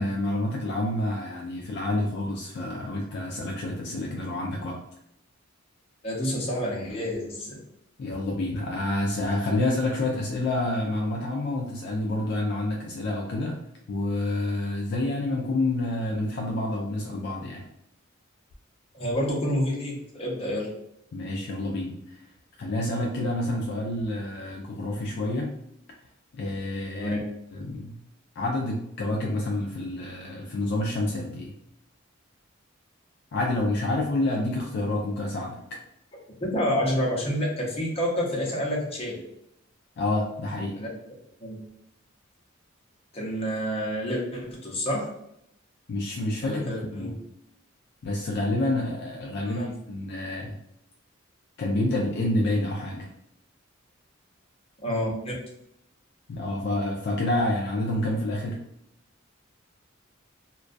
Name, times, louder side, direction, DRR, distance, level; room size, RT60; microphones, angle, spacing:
voice 1, 0.0-4.8 8.0-13.6 13.9-17.7 21.1-22.2 22.6-25.5 26.3-27.2 27.5-27.9 28.4-31.5 33.3-35.6 40.0-40.8 45.9-47.2 48.0-50.6 51.6-53.1 56.3-58.6, left 1 dB, 60° left, 0 dB, 0.3 m, -28 dB
voice 2, 6.0-7.6 18.9-20.7 26.9-27.2 36.3-39.2 40.8-40.9 41.4-41.6 43.1-45.1 46.4-47.1 49.4-49.7 54.8-55.4, equal, 30° left, -3 dB, 0.7 m, -28 dB
2.2 x 2.2 x 2.4 m, 0.77 s
head